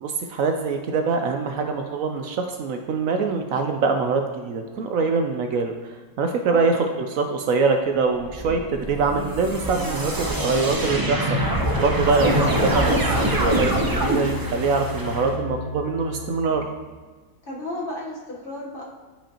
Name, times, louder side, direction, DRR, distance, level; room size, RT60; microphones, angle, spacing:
voice 1, 0.0-13.0 13.3-16.6, right 4 dB, 70° right, 4 dB, 0.9 m, -24 dB
sound 1, 8.2-15.3, right 1 dB, 30° right, 0.4 m, -24 dB
sound 2, 11.7-16.9, left 4 dB, 80° left, 1.7 m, -35 dB
voice 2, 12.1-12.5 17.4-18.8, left 1 dB, 40° left, -4 dB, 1.2 m, -33 dB
8.7 x 5.3 x 2.9 m, 1.3 s
omnidirectional pair, 1.6 m